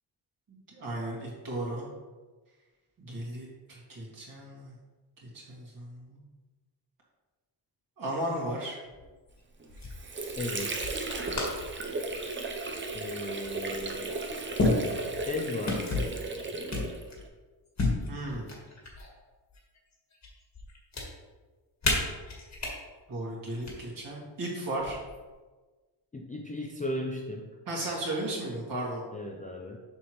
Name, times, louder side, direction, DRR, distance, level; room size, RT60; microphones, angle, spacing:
voice 1, 0.5-1.9 3.0-4.7 5.2-6.2 8.0-8.8 18.1-18.5 23.1-25.0 27.7-29.0, right 1 dB, 45° right, -4 dB, 2.2 m, -35 dB
sound 1, 8.9-9.3 9.7-10.0 10.8-11.7 12.1-12.4 13.4-13.5 14.6-15.3 15.6-16.2 16.7-17.3 17.8-19.1 19.5-20.3 20.5-21.0 21.8-22.7 23.5-23.7 24.8-25.3, left 2 dB, 35° left, 1.7 m, -31 dB
Water / Sink (filling or washing), 9.6-17.3, right 3 dB, 25° right, 0.7 m, -35 dB
voice 2, 10.4-10.8 12.9-14.1 15.3-15.9 26.1-27.5 29.1-29.8, left 1 dB, 20° left, 0 dB, 0.4 m, -36 dB
7.1 x 6.1 x 3.1 m, 1.3 s
wide cardioid pair, 160°, 45 cm